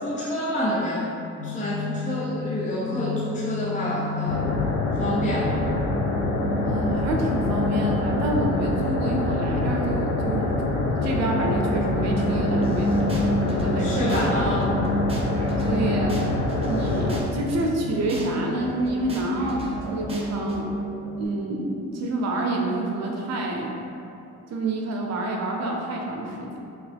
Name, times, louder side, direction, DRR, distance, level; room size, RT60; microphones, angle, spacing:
voice 1, 0.0-1.1 1.4-4.6 5.0-5.6 13.8-14.8, left 1 dB, 25° left, -6 dB, 0.6 m, -27 dB
sound 1, 1.4-21.3, left 1 dB, 55° left, 1.0 m, -31 dB
sound 2, 4.3-17.2, left 2 dB, 70° left, 0.6 m, -25 dB
voice 2, 6.6-10.6 10.9-14.3 15.7-16.2 16.6-20.7 21.2-23.7 24.5-26.6, right 1 dB, 60° right, 0 dB, 0.7 m, -28 dB
sound 3, 12.6-13.7 14.1-14.3 14.6-17.7 18.1-18.3 18.6-20.6, right 1 dB, 20° right, 0.6 m, -37 dB
3.1 x 3.0 x 3.4 m, 2.7 s
cardioid pair, 90°, 30 cm